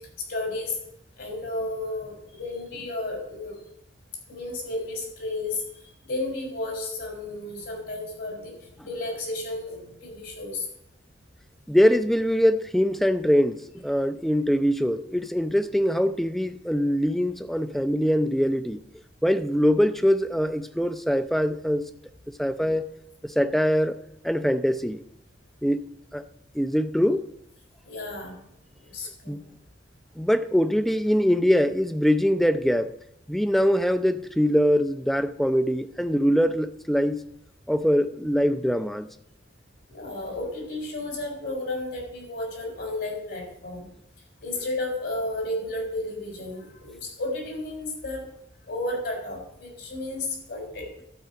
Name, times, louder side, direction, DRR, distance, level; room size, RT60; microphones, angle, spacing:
voice 1, 0.2-0.8 1.2-3.6 4.3-5.6 6.0-10.7 27.8-28.4 28.9-29.4 39.9-43.9 44.4-48.2 48.6-50.9, left 2 dB, 70° left, 4.2 m, -32 dB
voice 2, 11.7-18.8 19.2-21.9 22.4-22.9 23.2-24.0 24.2-25.0 25.6-26.2 26.5-27.3 29.3-29.4 30.2-32.9 33.3-37.2 37.7-39.1, equal, ahead, 0.4 m, -23 dB
12.0 x 4.8 x 8.0 m
head